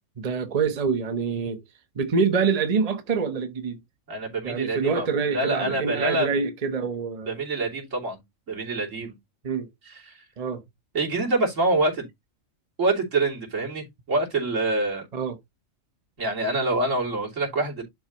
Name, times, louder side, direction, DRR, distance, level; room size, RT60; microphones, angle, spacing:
voice 1, 0.2-1.6 1.9-3.8 4.4-7.4 9.4-9.7 10.4-10.6 15.1-15.4, right 5 dB, 35° right, 0.9 m, -26 dB
voice 2, 4.1-6.4 7.3-8.2 8.5-9.2 9.9-10.2 10.9-12.1 12.8-15.1 16.2-17.8, right 2 dB, 75° right, 3.6 m, -26 dB
11.5 x 3.9 x 3.0 m
omnidirectional pair, 1.3 m